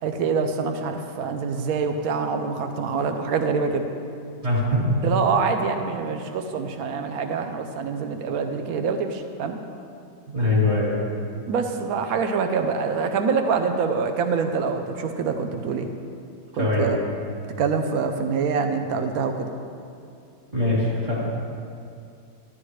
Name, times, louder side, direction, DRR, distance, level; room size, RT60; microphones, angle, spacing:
voice 1, 0.0-3.8 5.0-9.6 11.5-15.9 16.6-17.0 17.6-19.5, right 5 dB, 65° right, 6 dB, 1.1 m, -25 dB
voice 2, 4.4-5.0 10.3-11.0 16.5-17.0 20.5-21.2, left 2 dB, 40° right, -6 dB, 2.9 m, -22 dB
12.0 x 11.0 x 3.2 m, 2.4 s
omnidirectional pair, 1.8 m